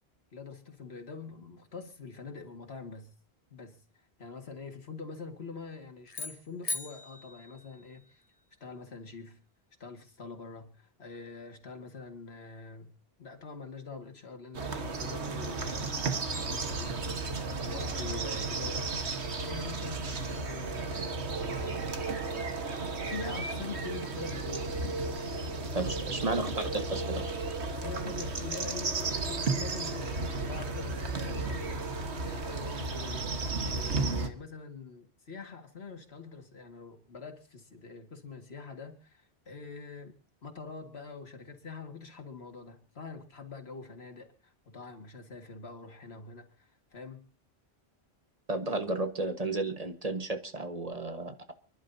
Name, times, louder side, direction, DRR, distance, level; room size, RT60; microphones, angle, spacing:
voice 1, 0.3-3.1 3.5-3.8 4.2-8.2 8.6-9.4 9.8-12.9 13.2-16.0 16.3-17.1 17.6-22.0 22.9-24.8 25.3-26.6 27.7-31.8 32.2-33.3 33.6-40.1 40.4-47.2, left 4 dB, 70° left, 5 dB, 2.2 m, -45 dB
sound 1, 6.1-8.4, left 3 dB, 35° left, 1.2 m, -40 dB
sound 2, 14.5-34.3, right 3 dB, 90° right, 1.7 m, -34 dB
voice 2, 25.7-27.2 48.5-51.5, right 2 dB, 35° right, 7 dB, 1.5 m, -33 dB
29.0 x 11.0 x 2.8 m, 0.38 s
omnidirectional pair, 1.1 m